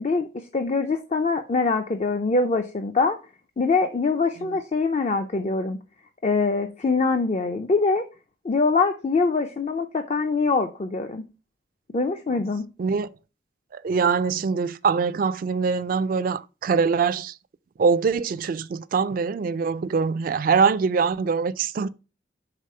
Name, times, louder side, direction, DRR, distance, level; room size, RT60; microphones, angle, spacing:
voice 1, 0.0-3.2 3.6-5.8 6.2-8.0 8.4-11.3 11.9-12.7, left 4 dB, 35° left, 0.4 m, -23 dB
voice 2, 13.7-17.3 17.8-21.9, right 5 dB, 50° right, 0.3 m, -23 dB
5.0 x 3.7 x 5.4 m
head